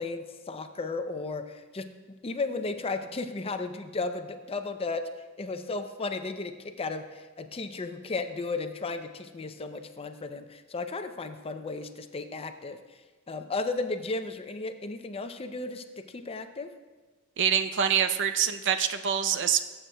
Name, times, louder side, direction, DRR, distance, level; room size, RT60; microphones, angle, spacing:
voice 1, 0.0-1.9 2.2-5.0 5.4-12.8 13.3-16.7, left 3 dB, 25° left, 8 dB, 0.5 m, -34 dB
voice 2, 17.4-19.6, right 8 dB, 60° right, 9 dB, 0.5 m, -25 dB
19.5 x 7.8 x 2.2 m, 1.3 s
head